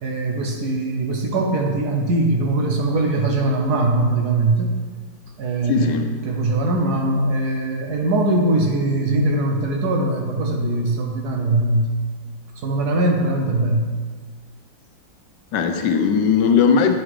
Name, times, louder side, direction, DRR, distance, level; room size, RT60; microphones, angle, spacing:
voice 1, 0.0-4.7 5.4-5.9 6.2-11.9 12.6-13.9, right 2 dB, 65° right, 2 dB, 1.3 m, -21 dB
voice 2, 5.6-6.1 15.5-17.0, left 6 dB, 80° left, 5 dB, 1.2 m, -18 dB
8.0 x 3.8 x 4.8 m, 1.5 s
omnidirectional pair, 1.9 m